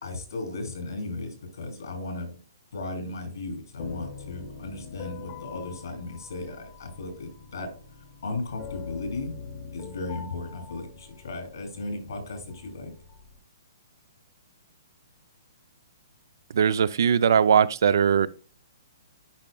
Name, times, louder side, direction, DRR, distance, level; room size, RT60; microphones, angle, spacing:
voice 1, 0.0-2.4 2.7-7.7 8.2-9.3 9.7-12.9, left 2 dB, 75° left, 2.7 m, -36 dB
sound 1, 3.8-13.4, left 5 dB, 30° left, 0.9 m, -43 dB
voice 2, 16.5-18.3, right 7 dB, 60° right, 0.4 m, -20 dB
10.5 x 4.6 x 2.2 m
hypercardioid pair, 170°, 2 cm